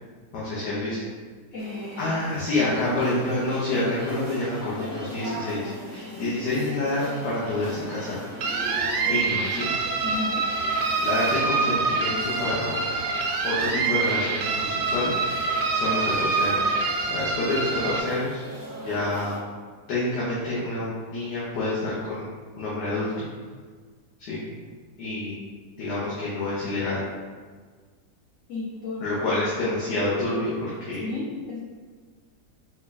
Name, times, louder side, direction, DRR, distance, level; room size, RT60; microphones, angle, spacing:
voice 1, 0.3-1.0 2.0-8.2 9.0-9.7 11.0-12.8 13.4-18.4 18.8-19.4 19.9-22.3 22.6-23.3 24.2-24.4 25.0-25.4 25.8-27.0 29.0-31.0, left 2 dB, 80° left, -9 dB, 1.6 m, -28 dB
voice 2, 1.5-2.1 9.1-9.2 10.0-10.5 28.5-29.1 31.0-31.6, left 2 dB, 60° left, -8 dB, 0.9 m, -33 dB
sound 1, 1.6-19.4, equal, 15° right, 0.5 m, -40 dB
sound 2, 8.4-18.0, right 4 dB, 80° right, 1.1 m, -26 dB
4.9 x 2.3 x 3.9 m, 1.5 s
omnidirectional pair, 1.8 m